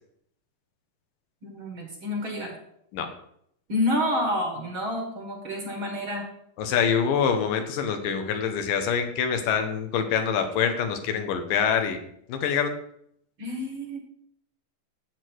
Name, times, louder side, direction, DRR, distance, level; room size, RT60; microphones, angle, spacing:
voice 1, 1.4-2.6 3.7-6.3 13.4-14.0, left 1 dB, 45° right, 2 dB, 2.1 m, -29 dB
voice 2, 6.6-12.0 12.3-12.7, left 7 dB, 85° left, 6 dB, 2.9 m, -25 dB
12.5 x 8.2 x 4.6 m, 0.71 s
omnidirectional pair, 3.8 m